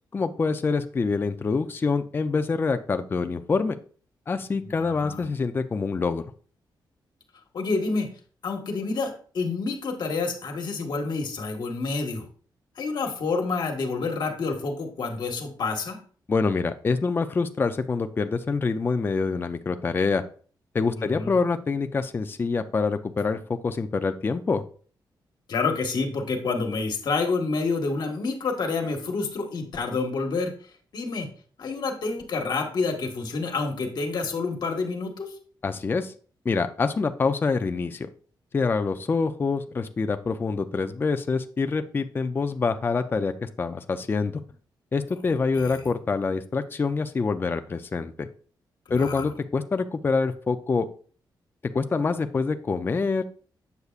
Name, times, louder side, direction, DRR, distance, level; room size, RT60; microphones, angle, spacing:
voice 1, 0.1-3.8 4.3-6.2 16.3-20.2 20.7-24.6 35.6-36.1 36.5-38.1 38.5-44.4 44.9-48.3 48.9-50.9 51.7-53.2, left 4 dB, 25° left, 8 dB, 0.4 m, -26 dB
voice 2, 4.7-5.2 7.5-8.1 8.4-12.3 12.8-16.0 21.0-21.3 25.5-30.5 30.9-31.3 31.6-35.3 45.5-45.9 48.9-49.2, left 4 dB, 60° left, 4 dB, 1.4 m, -28 dB
8.0 x 6.8 x 2.4 m, 0.43 s
wide cardioid pair, 135°, 8 cm